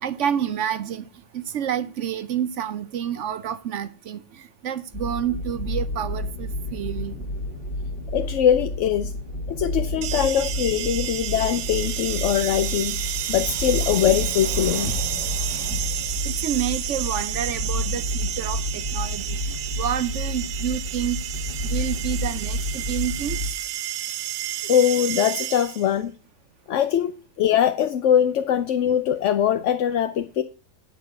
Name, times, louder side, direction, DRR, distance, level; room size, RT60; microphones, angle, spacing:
voice 1, 0.0-1.1 1.3-7.2 16.2-19.4 19.8-21.2 21.6-23.4, right 9 dB, 65° right, 0.8 m, -29 dB
sound 1, 4.9-23.5, left 1 dB, 35° left, 1.8 m, -30 dB
voice 2, 8.1-9.1 9.5-13.0 13.3-14.9 24.7-26.1 26.7-30.4, left 9 dB, 60° left, 0.8 m, -22 dB
sound 2, 10.0-26.0, right 12 dB, 85° right, 1.2 m, -31 dB
sound 3, 12.4-16.9, left 2 dB, 85° left, 5.1 m, -38 dB
10.5 x 4.9 x 6.7 m
omnidirectional pair, 1.7 m